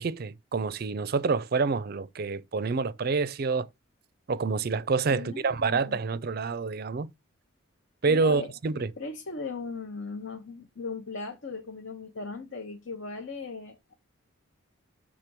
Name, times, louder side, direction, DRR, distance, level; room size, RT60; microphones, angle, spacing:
voice 1, 0.0-3.7 4.3-7.1 8.0-8.9, right 4 dB, 45° right, 0.4 m, -27 dB
voice 2, 5.1-6.0 8.1-8.5 9.0-13.9, left 4 dB, 65° left, 0.9 m, -38 dB
6.7 x 3.7 x 5.9 m
head